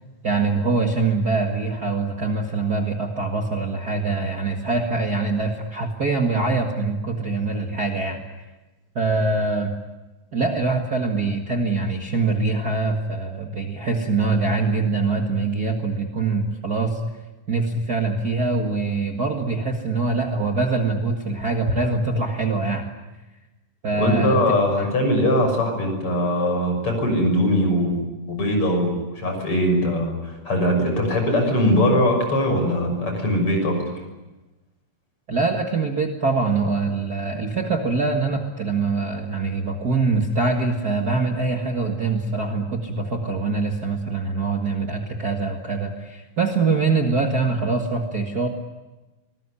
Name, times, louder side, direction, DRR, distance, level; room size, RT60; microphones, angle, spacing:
voice 1, 0.2-8.2 9.0-9.7 10.3-17.0 17.5-22.9 23.8-24.4 24.8-24.9 35.3-48.5, right 3 dB, 35° right, 2 dB, 2.0 m, -23 dB
voice 2, 24.0-33.8, left 1 dB, 45° left, 4 dB, 7.2 m, -21 dB
25.0 x 20.5 x 9.8 m, 1.1 s
omnidirectional pair, 3.6 m